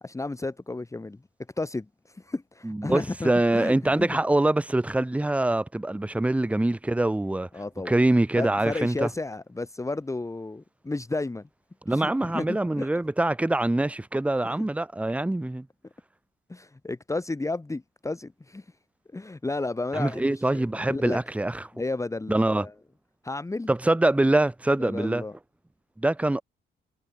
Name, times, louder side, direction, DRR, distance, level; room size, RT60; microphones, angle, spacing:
voice 1, 0.0-1.2 1.6-4.2 7.5-8.0 8.4-11.5 11.9-12.9 14.4-14.7 16.5-18.7 19.1-21.2 21.7-22.7 23.2-23.7 24.8-25.3, left 2 dB, 15° left, 1.8 m, -32 dB
voice 2, 2.6-7.5 7.9-9.1 11.9-15.7 19.9-21.7 22.3-22.7 23.7-25.2 26.0-26.4, right 2 dB, 5° right, 0.6 m, -24 dB
cardioid pair, 90°, 20 cm